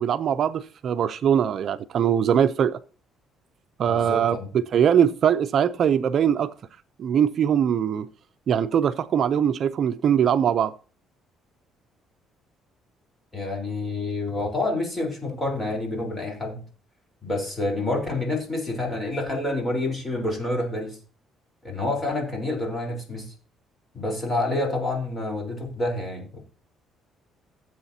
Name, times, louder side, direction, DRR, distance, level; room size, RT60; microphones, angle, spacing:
voice 1, 0.0-2.8 3.8-6.5 7.0-8.1 8.5-10.7, right 8 dB, 50° right, 0.5 m, -22 dB
voice 2, 3.9-4.5 13.3-16.6 17.2-21.0 21.6-23.3 23.9-26.4, left 2 dB, 20° left, 3.9 m, -28 dB
17.0 x 8.0 x 2.8 m
cardioid pair, 120°, 0 cm